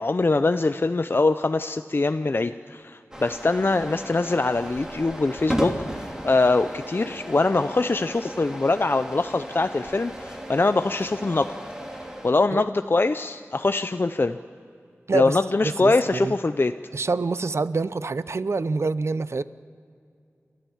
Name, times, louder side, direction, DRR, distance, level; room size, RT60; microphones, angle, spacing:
voice 1, 0.0-11.5 12.2-14.4 15.1-16.7, left 3 dB, 45° left, 9 dB, 0.5 m, -23 dB
sound 1, 3.1-12.3, equal, 15° right, 2.7 m, -35 dB
voice 2, 15.1-16.4 16.9-19.4, right 3 dB, 65° right, 15 dB, 0.5 m, -26 dB
29.5 x 12.5 x 7.2 m, 2.4 s
wide cardioid pair, 60°, 5 cm